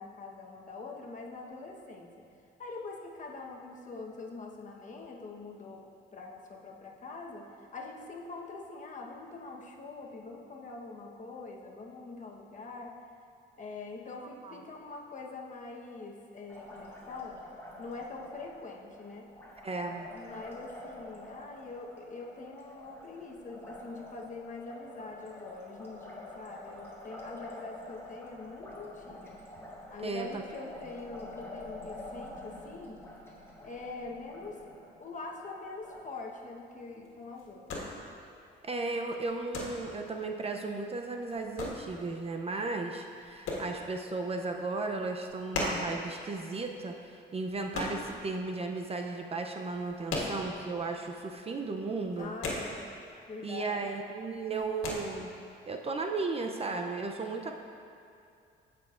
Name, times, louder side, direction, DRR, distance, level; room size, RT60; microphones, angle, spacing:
voice 1, 0.0-2.1 2.6-5.8 6.1-12.9 13.6-17.4 17.8-19.2 20.1-29.4 29.9-33.0 33.6-37.8 52.1-52.8 53.3-53.8, left 3 dB, 40° left, 0 dB, 1.1 m, -44 dB
Liquid, 16.5-36.0, left 1 dB, 15° left, 1.5 m, -48 dB
voice 2, 19.6-20.1 30.0-30.3 38.6-52.3 53.4-55.3 55.7-57.5, right 3 dB, 30° right, 3 dB, 0.5 m, -35 dB
sound 1, 35.8-48.8 49.0-51.0 51.2-51.4 51.7-53.3 53.5-54.0 54.3-54.9, left 2 dB, 80° left, 1.6 m, -38 dB
14.5 x 6.0 x 2.5 m, 2.5 s
cardioid pair, 90°, 20 cm